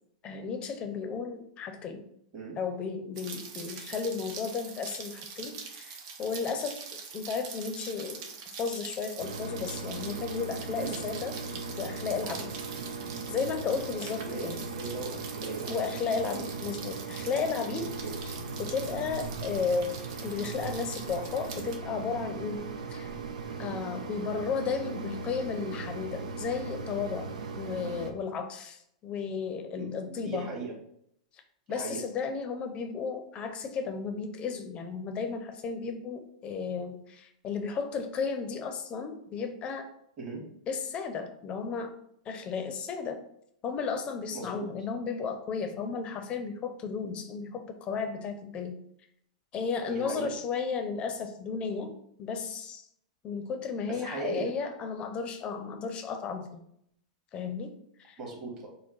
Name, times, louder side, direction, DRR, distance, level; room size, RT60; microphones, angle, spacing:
voice 1, 0.2-2.1 2.6-8.3 8.6-11.4 11.8-12.5 13.3-14.6 15.7-18.0 18.2-22.6 22.9-23.1 23.6-30.5 31.7-39.9 40.7-41.9 42.3-43.2 43.6-48.8 49.5-52.9 53.2-56.6 57.3-57.7 58.0-58.2, left 5 dB, 30° left, 7 dB, 0.6 m, -34 dB
Rain, 3.2-21.8, right 5 dB, 50° right, 0.7 m, -44 dB
Mechanisms, 9.2-28.1, right 4 dB, 85° right, 0.5 m, -38 dB
voice 2, 14.8-15.9 16.3-16.5 18.0-18.2 23.5-23.7 29.8-30.7 31.7-32.0 40.2-40.4 44.3-44.7 49.9-50.3 53.9-54.5 58.2-58.7, right 3 dB, 30° right, -3 dB, 1.8 m, -38 dB
4.5 x 2.1 x 4.6 m, 0.72 s
hypercardioid pair, 130°, 4 cm